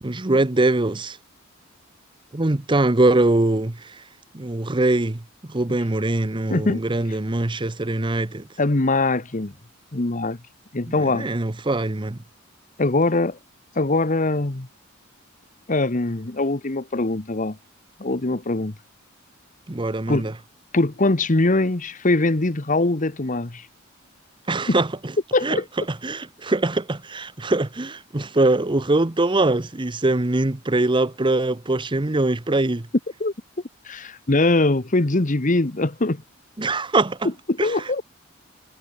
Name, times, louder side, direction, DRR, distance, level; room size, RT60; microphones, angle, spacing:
voice 1, 0.0-1.2 2.3-4.0 4.3-5.2 5.5-8.5 11.0-12.2 19.7-20.3 24.5-24.9 25.4-25.6 25.9-32.9 36.6-37.3 37.6-38.0, right 2 dB, 25° right, 0.8 m, -22 dB
voice 2, 6.5-6.8 8.6-9.5 9.9-10.4 10.7-11.3 12.8-13.4 13.7-14.7 15.7-17.6 18.0-18.7 20.1-20.3 20.7-23.6 24.7-24.8 25.3-25.6 33.2-33.3 33.9-36.2 37.5-38.0, left 2 dB, 40° left, 1.2 m, -22 dB
head